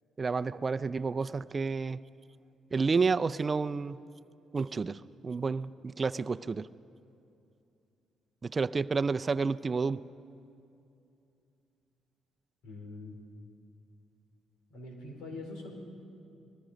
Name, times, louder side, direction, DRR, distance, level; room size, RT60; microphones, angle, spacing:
voice 1, 0.2-2.0 2.7-4.0 4.5-6.7 8.4-10.0, right 4 dB, 35° right, 12 dB, 0.5 m, -30 dB
voice 2, 12.6-13.2 14.7-15.7, left 2 dB, 90° left, 1 dB, 4.7 m, -43 dB
29.5 x 20.5 x 5.2 m, 2.7 s
cardioid pair, 90°, 0 cm